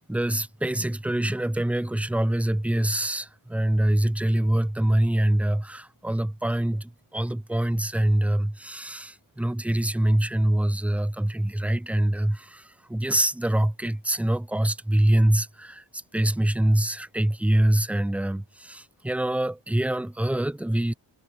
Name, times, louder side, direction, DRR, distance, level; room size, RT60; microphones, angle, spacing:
voice 1, 0.1-12.6 12.9-15.8 16.1-20.9, right 1 dB, 5° right, 0.4 m, -24 dB
wide cardioid pair, 110°, 46 cm